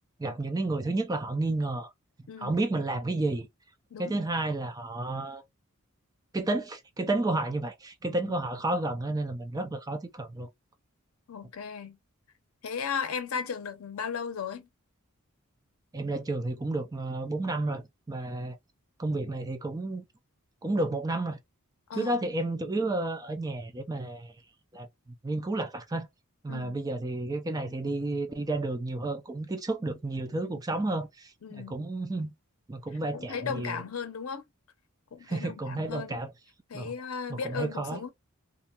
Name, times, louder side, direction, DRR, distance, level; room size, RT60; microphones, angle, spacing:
voice 1, 0.2-1.9 2.4-3.5 4.0-5.4 6.3-10.5 15.9-18.6 19.0-20.0 20.6-21.4 21.9-24.3 24.7-24.9 25.2-26.1 26.4-32.3 32.7-33.8 35.3-36.3 36.7-36.9 37.3-38.0, right 2 dB, 15° right, 0.3 m, -31 dB
voice 2, 2.3-2.6 3.9-4.2 11.3-12.0 12.6-14.7 21.9-22.2 26.5-26.8 31.4-31.8 33.1-34.4 35.1-36.3 36.7-38.1, left 6 dB, 75° left, 0.6 m, -36 dB
2.4 x 2.2 x 2.8 m
head